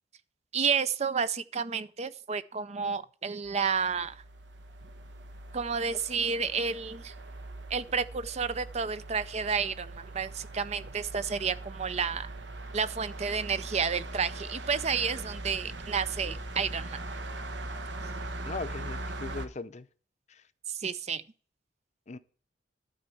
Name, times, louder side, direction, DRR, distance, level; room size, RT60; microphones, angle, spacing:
voice 1, 0.5-4.2 5.5-7.1 7.7-12.3 12.7-17.0 20.7-21.2, right 6 dB, 35° right, 0.5 m, -31 dB
sound 1, 3.4-19.5, right 2 dB, 65° right, 1.1 m, -41 dB
voice 2, 18.4-19.9 20.3-20.4 22.1-22.2, left 3 dB, 35° left, 0.6 m, -39 dB
12.0 x 4.4 x 8.2 m
head